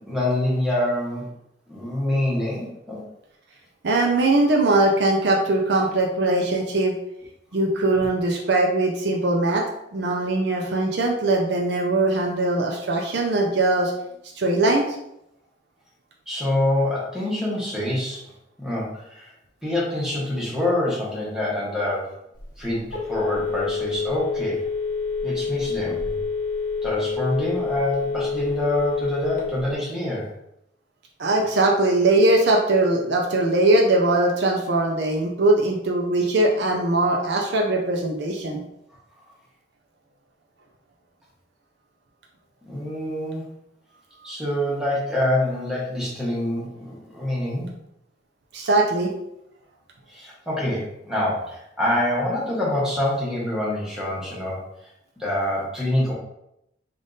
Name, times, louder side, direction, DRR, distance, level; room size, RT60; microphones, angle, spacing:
voice 1, 0.1-1.2 1.7-3.0 16.3-18.2 18.6-19.3 19.6-22.1 22.6-24.6 25.2-26.2 26.8-30.3 42.7-43.4 44.2-47.7 50.1-54.6 55.2-56.1, left 1 dB, 5° right, -6 dB, 1.0 m, -26 dB
voice 2, 3.8-6.9 7.5-9.7 9.9-13.9 14.4-14.8 31.2-38.6 48.5-49.1, right 2 dB, 60° right, 0 dB, 0.5 m, -21 dB
Telephone, 22.4-29.7, left 5 dB, 50° left, 1.0 m, -27 dB
3.5 x 2.5 x 3.9 m, 0.81 s
head